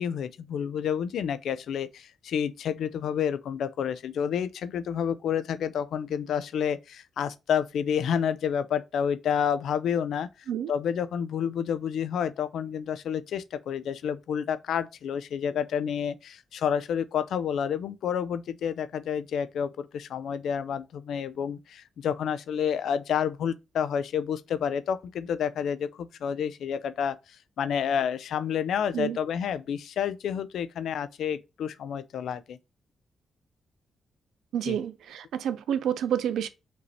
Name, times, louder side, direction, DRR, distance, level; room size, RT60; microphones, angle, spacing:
voice 1, 0.0-10.3 10.7-32.6 34.6-34.8, left 8 dB, 80° left, 0.4 m, -29 dB
voice 2, 34.5-36.5, right 9 dB, 85° right, 0.4 m, -29 dB
5.1 x 2.8 x 3.2 m
cardioid pair, 85°, 0 cm